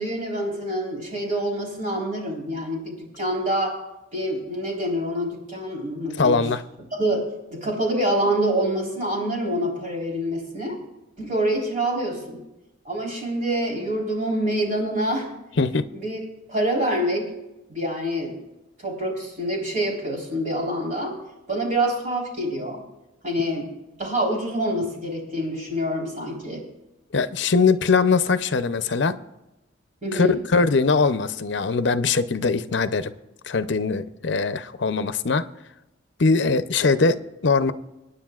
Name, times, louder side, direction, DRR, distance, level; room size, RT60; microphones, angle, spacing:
voice 1, 0.0-3.7 4.1-6.5 7.0-10.8 11.2-12.4 12.9-15.3 16.0-16.2 16.5-17.3 17.7-18.4 18.8-21.2 21.5-22.8 23.2-23.7 24.0-26.6 30.0-30.4, right 1 dB, 40° right, -1 dB, 3.9 m, -26 dB
voice 2, 6.2-6.6 15.6-15.8 27.1-29.2 30.1-33.1 33.4-35.4 36.2-37.7, left 4 dB, 65° left, 12 dB, 0.6 m, -21 dB
25.0 x 9.8 x 2.4 m, 0.96 s
head